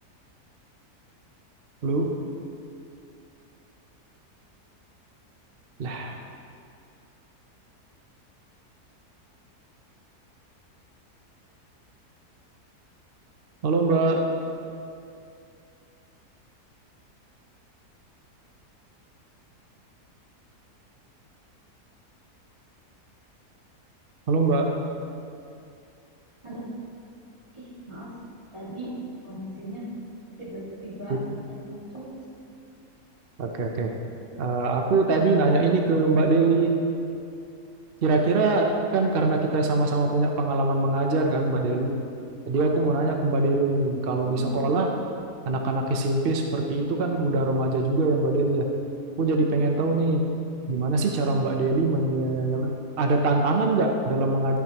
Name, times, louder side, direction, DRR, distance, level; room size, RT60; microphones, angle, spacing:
voice 1, 5.8-6.2 13.6-14.2 24.3-24.7 31.1-31.2 33.4-33.9 34.4-36.7 38.0-41.9 42.5-44.9 45.5-48.7 49.2-50.3 50.7-54.6, right 3 dB, 50° right, 2 dB, 0.7 m, -23 dB
voice 2, 27.5-28.1 28.5-28.9 29.3-29.8 30.4-31.2 31.7-32.2 44.2-44.6, right 1 dB, 20° right, -8 dB, 2.2 m, -38 dB
12.5 x 9.3 x 3.0 m, 2.5 s
omnidirectional pair, 1.7 m